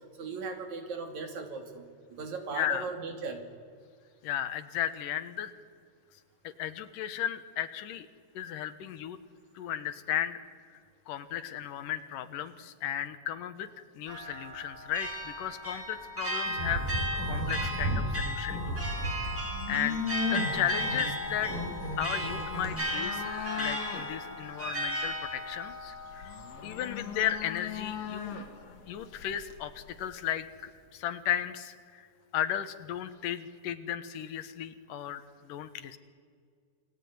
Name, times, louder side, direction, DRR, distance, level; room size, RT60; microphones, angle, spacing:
voice 1, 0.2-1.9 2.1-3.4, right 4 dB, 65° right, 5 dB, 3.8 m, -37 dB
voice 2, 2.5-2.9 4.2-5.5 6.4-8.1 8.3-9.2 9.5-10.4 11.1-13.7 13.9-16.8 17.3-18.8 19.2-19.4 19.7-21.5 22.0-23.2 23.6-26.4 26.6-28.4 28.9-32.1 32.3-36.0, left 11 dB, 90° left, 11 dB, 2.9 m, -35 dB
sound 1, 14.1-27.0, equal, 5° right, 5.1 m, -36 dB
sound 2, 16.5-18.0 18.4-22.7, equal, 85° right, 6.7 m, -33 dB
sound 3, 19.2-30.1, left 7 dB, 55° left, 3.0 m, -42 dB
28.5 x 19.0 x 9.6 m, 2.1 s
omnidirectional pair, 3.7 m